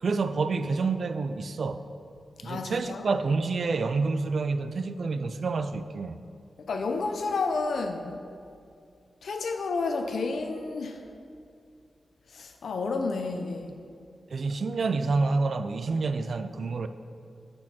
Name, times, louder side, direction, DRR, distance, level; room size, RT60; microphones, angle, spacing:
voice 1, 0.0-1.9 2.4-6.2 14.3-16.9, right 4 dB, 55° right, 10 dB, 0.3 m, -28 dB
voice 2, 2.4-3.0 6.6-8.2 9.2-11.0 12.3-13.7, left 3 dB, 80° left, 6 dB, 0.6 m, -30 dB
8.3 x 6.4 x 4.2 m, 2.4 s
wide cardioid pair, 175°, 0 cm